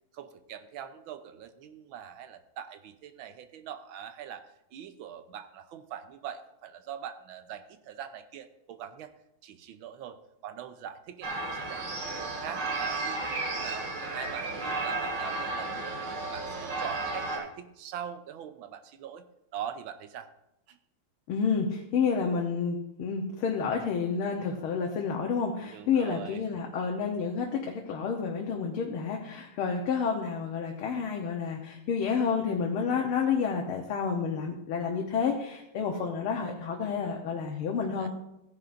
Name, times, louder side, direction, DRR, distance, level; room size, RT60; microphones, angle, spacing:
voice 1, 0.1-9.1 9.4-19.3 19.5-20.3 20.7-20.8 25.6-26.4 37.8-38.1, right 9 dB, 75° right, 9 dB, 1.5 m, -43 dB
sound 1, 11.2-17.4, right 3 dB, 55° right, 2.8 m, -33 dB
voice 2, 21.3-38.1, left 6 dB, 85° left, 1 dB, 1.9 m, -30 dB
15.5 x 10.0 x 2.5 m, 0.86 s
omnidirectional pair, 2.3 m